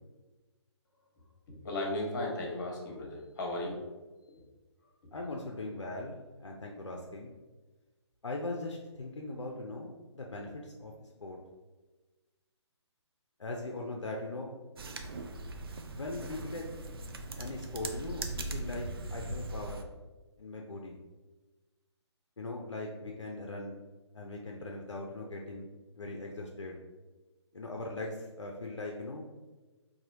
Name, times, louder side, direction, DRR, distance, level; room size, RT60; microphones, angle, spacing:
voice 1, 1.5-3.8, left 1 dB, 40° left, -1 dB, 1.0 m, -35 dB
voice 2, 5.1-7.3 8.2-11.4 13.4-14.5 15.9-16.7 17.4-19.8 20.4-21.0 22.4-23.8 24.1-25.7 25.9-26.8 27.5-29.2, left 2 dB, 75° left, 0 dB, 0.5 m, -40 dB
sound 1, 14.8-19.8, right 2 dB, 55° right, 0.4 m, -40 dB
4.1 x 2.7 x 2.6 m, 1.2 s
figure-of-eight pair, 140°, 15 cm